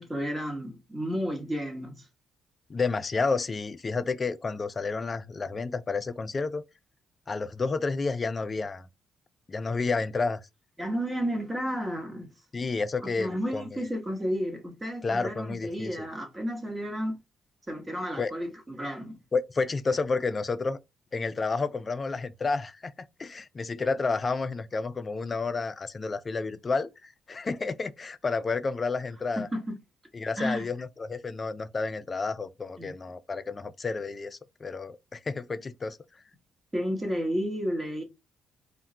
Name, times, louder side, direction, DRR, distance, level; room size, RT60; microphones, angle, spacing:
voice 1, 0.0-2.1 10.8-12.3 13.0-17.2 17.7-19.2 29.4-29.7 30.4-30.7 32.8-32.9 36.7-38.0, equal, 15° right, 1.0 m, -32 dB
voice 2, 2.7-6.6 7.3-8.9 9.5-10.4 12.5-13.8 15.0-16.1 18.2-18.3 19.3-20.8 21.1-22.9 23.2-29.5 30.1-36.0, left 4 dB, 35° left, 0.3 m, -30 dB
2.3 x 2.2 x 3.8 m
cardioid pair, 90°, 0 cm